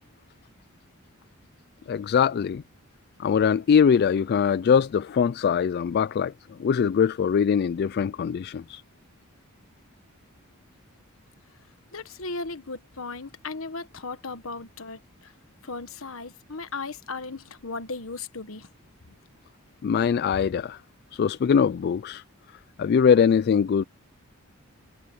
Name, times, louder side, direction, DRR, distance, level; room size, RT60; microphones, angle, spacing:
voice 1, 1.9-2.6 3.2-8.8 19.8-20.8 21.1-22.2 22.8-23.8, left 7 dB, 50° left, 0.3 m, -22 dB
voice 2, 11.9-15.3 15.6-18.7, left 3 dB, 70° left, 1.4 m, -36 dB
head